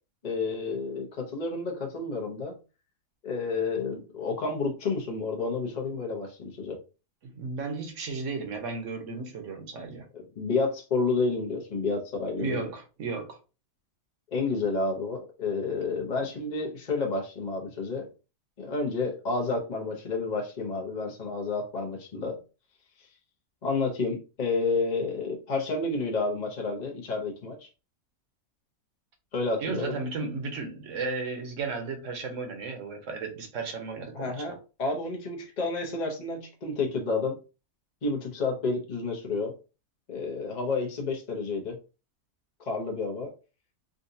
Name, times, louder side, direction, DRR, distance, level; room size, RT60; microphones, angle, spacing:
voice 1, 0.2-2.6 3.2-6.8 10.1-12.6 14.3-18.1 18.6-22.4 23.6-27.7 29.3-30.0 34.1-34.5 34.8-37.4 38.0-39.5 40.1-41.8 42.6-43.3, left 3 dB, 40° left, 0.6 m, -30 dB
voice 2, 7.2-10.1 12.4-13.4 29.6-34.6, right 4 dB, 55° right, 1.1 m, -34 dB
3.8 x 2.4 x 2.6 m
omnidirectional pair, 1.7 m